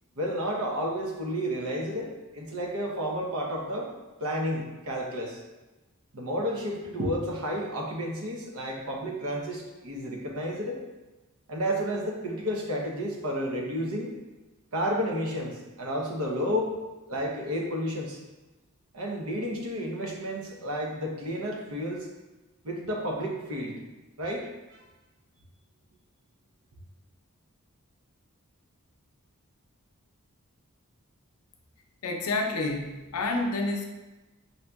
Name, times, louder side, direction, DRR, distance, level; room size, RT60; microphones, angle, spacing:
voice 1, 0.2-3.9 4.2-5.4 6.1-10.8 11.5-14.2 14.7-16.7 17.1-18.2 18.9-22.1 22.6-23.8 24.2-24.5, equal, 70° right, 0 dB, 0.7 m, -31 dB
voice 2, 32.0-33.8, left 2 dB, 75° left, 2 dB, 0.5 m, -29 dB
5.5 x 2.6 x 2.3 m, 1.1 s
head